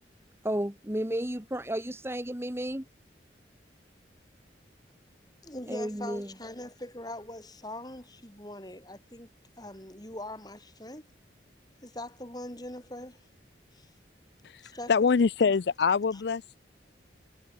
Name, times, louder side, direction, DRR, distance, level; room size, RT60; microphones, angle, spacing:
voice 1, 0.4-2.9 5.7-6.3, right 1 dB, 15° right, 1.6 m, -32 dB
voice 2, 5.4-9.3 9.6-11.1 11.8-13.2 13.7-13.9 14.6-15.2 16.1-16.2, left 1 dB, 20° left, 5.2 m, -42 dB
voice 3, 14.9-16.6, left 5 dB, 65° left, 0.4 m, -24 dB
head